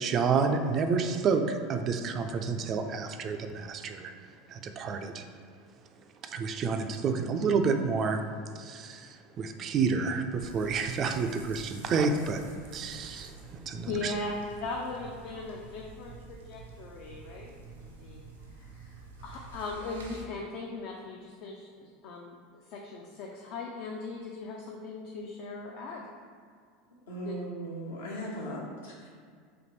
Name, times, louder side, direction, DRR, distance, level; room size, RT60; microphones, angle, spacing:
voice 1, 0.0-4.1 4.5-5.2 6.2-8.2 8.6-12.4 12.7-14.1, right 5 dB, 40° right, 6 dB, 0.3 m, -29 dB
sound 1, 10.4-20.2, right 4 dB, 90° right, 0.6 m, -48 dB
voice 2, 13.9-14.3 14.6-17.5 17.8-18.2 18.5-26.0 27.2-27.3, left 3 dB, 55° left, -1 dB, 0.4 m, -39 dB
voice 3, 27.1-29.1, right 1 dB, 75° left, -4 dB, 0.9 m, -38 dB
4.1 x 2.6 x 3.1 m, 2.1 s
hypercardioid pair, 80°, 0 cm